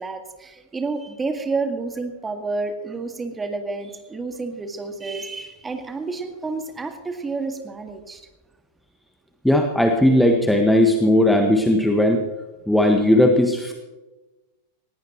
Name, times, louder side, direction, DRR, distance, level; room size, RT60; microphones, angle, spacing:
voice 1, 0.0-8.2, right 3 dB, 15° right, 6 dB, 1.9 m, -30 dB
voice 2, 9.4-12.2 12.7-13.7, left 1 dB, ahead, 3 dB, 1.4 m, -17 dB
19.5 x 17.0 x 3.0 m, 1.1 s
figure-of-eight pair, 90°, 0 cm